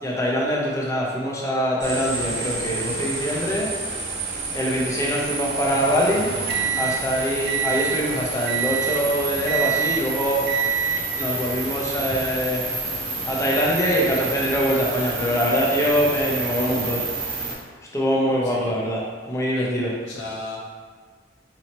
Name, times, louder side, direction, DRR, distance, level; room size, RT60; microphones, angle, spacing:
voice 1, 0.0-3.7 4.5-6.3 6.8-10.5 11.1-12.7 13.3-17.0 17.9-19.0 19.3-19.9, equal, 15° left, -4 dB, 0.6 m, -23 dB
sound 1, 1.8-17.5, right 3 dB, 85° right, 1.0 m, -30 dB
sound 2, 6.1-8.1 8.5-9.1 9.5-10.1 10.5-11.1 11.9-12.2, right 8 dB, 55° right, 0.4 m, -26 dB
voice 2, 18.4-18.7 19.5-20.6, equal, 70° left, -4 dB, 0.9 m, -33 dB
4.2 x 2.7 x 2.9 m, 1.5 s
head